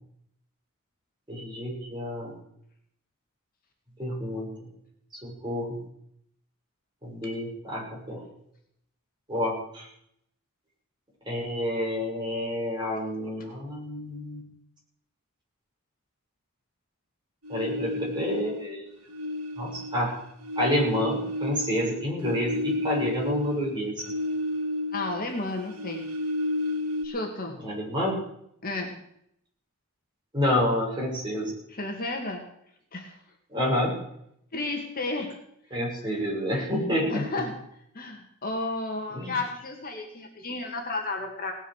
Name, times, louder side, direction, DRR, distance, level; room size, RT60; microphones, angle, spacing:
voice 1, 1.3-2.3 4.0-4.5 5.2-5.8 7.0-8.2 9.3-9.9 11.3-14.4 17.5-18.9 19.6-20.1 20.6-23.9 27.6-28.2 30.3-31.5 33.5-33.9 35.7-37.3 39.1-39.4, left 1 dB, 20° right, -4 dB, 6.8 m, -29 dB
sound 1, 17.4-18.8 19.1-25.2 25.5-27.1, left 1 dB, 90° right, 2.2 m, -32 dB
voice 2, 24.9-26.1 27.0-27.6 28.6-28.9 31.7-32.4 32.9-33.2 34.5-35.3 37.1-37.5 37.9-41.5, left 2 dB, 40° left, 3 dB, 2.2 m, -32 dB
18.0 x 9.9 x 6.6 m, 0.72 s
head